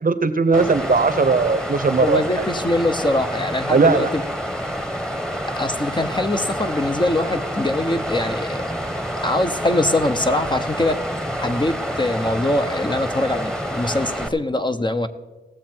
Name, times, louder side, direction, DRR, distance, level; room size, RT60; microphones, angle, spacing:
voice 1, 0.0-2.2 3.7-4.1, right 4 dB, 45° right, 12 dB, 0.8 m, -18 dB
Water, 0.5-14.3, equal, 5° left, 1.2 m, -28 dB
voice 2, 2.0-4.2 5.6-8.8 9.2-11.0 11.4-15.1, left 1 dB, 25° left, 7 dB, 0.8 m, -23 dB
18.0 x 7.3 x 4.5 m, 1.2 s
cardioid pair, 55°, 19 cm